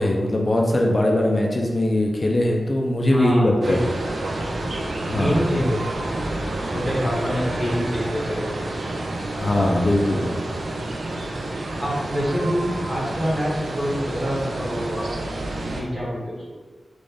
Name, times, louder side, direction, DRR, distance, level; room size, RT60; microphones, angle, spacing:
voice 1, 0.0-3.8 5.0-5.4 9.4-10.3, left 1 dB, 35° left, 0 dB, 0.6 m, -21 dB
voice 2, 3.1-3.8 5.1-5.9 6.6-8.5 9.5-10.4 11.8-15.1 15.7-16.4, equal, 30° right, -6 dB, 1.2 m, -26 dB
sound 1, 3.6-15.8, right 2 dB, 70° right, 0.5 m, -29 dB
3.9 x 2.5 x 3.5 m, 1.3 s
wide cardioid pair, 95°, 0 cm